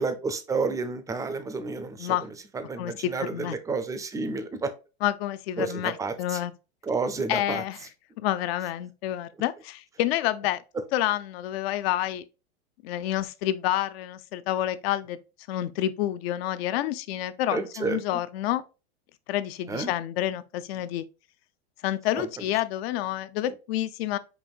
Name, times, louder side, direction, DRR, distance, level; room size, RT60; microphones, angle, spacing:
voice 1, 0.0-4.7 5.6-6.4 6.8-7.6 10.8-10.9 17.5-18.0 19.7-19.9 22.1-22.5, right 4 dB, 10° right, 0.4 m, -31 dB
voice 2, 2.8-3.6 5.0-6.5 7.3-7.8 8.2-10.6 10.9-12.2 12.8-15.2 15.5-18.6 19.3-21.1 21.8-24.2, left 13 dB, 65° left, 0.5 m, -28 dB
5.4 x 2.6 x 2.3 m
hypercardioid pair, 115°, 33 cm